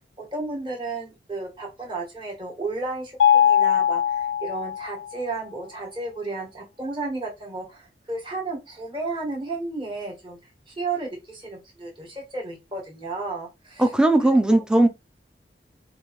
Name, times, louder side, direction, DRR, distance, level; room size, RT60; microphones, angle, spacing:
voice 1, 0.2-10.4 10.7-13.9 14.2-14.6, right 3 dB, 30° right, 1.4 m, -33 dB
Mallet percussion, 3.2-5.2, left 9 dB, 85° left, 0.3 m, -20 dB
voice 2, 13.8-14.9, right 1 dB, 5° right, 0.4 m, -18 dB
4.8 x 2.6 x 3.0 m
head